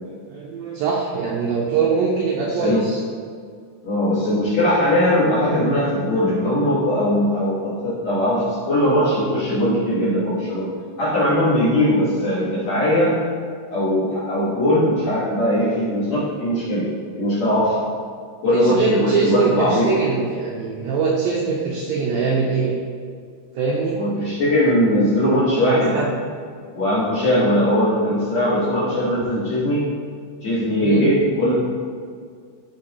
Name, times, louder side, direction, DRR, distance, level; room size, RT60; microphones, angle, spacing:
voice 1, 0.3-3.0 18.5-22.8 23.6-24.0 25.6-26.1 30.8-31.1, right 5 dB, 85° right, -2 dB, 2.0 m, -22 dB
voice 2, 2.4-2.8 3.8-10.7 11.0-13.2 13.7-16.9 17.2-17.8 18.4-19.9 24.0-26.0 26.7-29.9 30.4-31.5, left 1 dB, 55° left, -9 dB, 2.1 m, -20 dB
13.0 x 4.5 x 3.0 m, 2.1 s
omnidirectional pair, 5.0 m